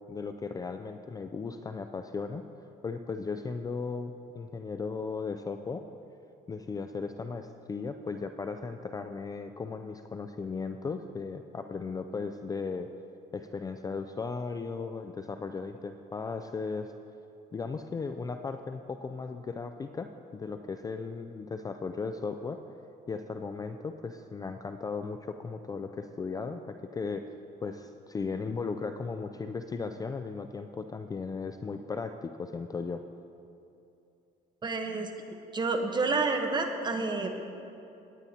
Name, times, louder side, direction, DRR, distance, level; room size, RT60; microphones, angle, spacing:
voice 1, 0.1-2.4 2.8-5.8 6.5-12.9 13.3-16.9 17.5-22.6 23.1-27.3 27.6-33.0, left 4 dB, 20° left, 7 dB, 0.4 m, -36 dB
voice 2, 34.6-35.1 35.5-37.4, right 3 dB, 25° right, 5 dB, 1.0 m, -29 dB
18.0 x 9.6 x 2.8 m, 2.8 s
cardioid pair, 110°, 17 cm